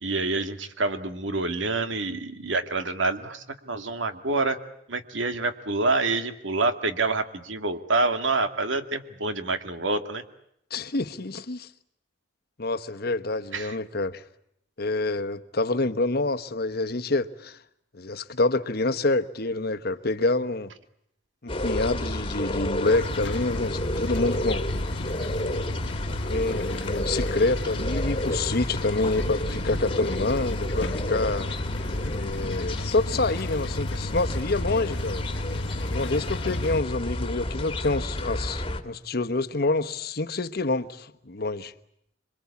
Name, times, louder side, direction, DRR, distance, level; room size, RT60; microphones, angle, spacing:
voice 1, 0.0-4.6 4.9-10.2 13.5-13.8, right 3 dB, 85° right, 2.2 m, -27 dB
voice 2, 10.7-11.7 12.6-14.2 14.8-17.6 17.9-20.7 21.4-24.6 26.2-31.5 32.1-35.3 35.9-41.7, left 2 dB, 55° left, 1.2 m, -27 dB
sound 1, 21.5-38.8, left 1 dB, 30° left, 1.7 m, -30 dB
sound 2, 22.8-36.8, left 2 dB, 75° left, 1.4 m, -35 dB
27.0 x 23.0 x 8.4 m
head